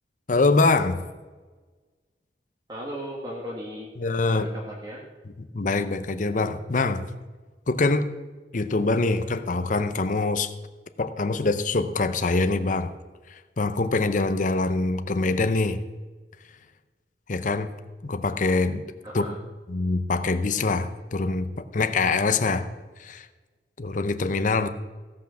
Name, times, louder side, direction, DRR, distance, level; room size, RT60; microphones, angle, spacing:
voice 1, 0.3-1.0 4.0-4.5 5.2-7.0 7.7-8.1 8.5-10.5 11.0-12.9 13.6-15.8 17.3-17.7 18.0-18.8 19.1-19.2 19.7-22.7 23.0-23.3 23.8-24.7, left 3 dB, 45° left, 10 dB, 0.7 m, -24 dB
voice 2, 2.7-3.9 4.2-5.0 19.0-19.4, equal, 25° right, -3 dB, 1.6 m, -36 dB
16.5 x 5.8 x 6.2 m, 1.3 s
head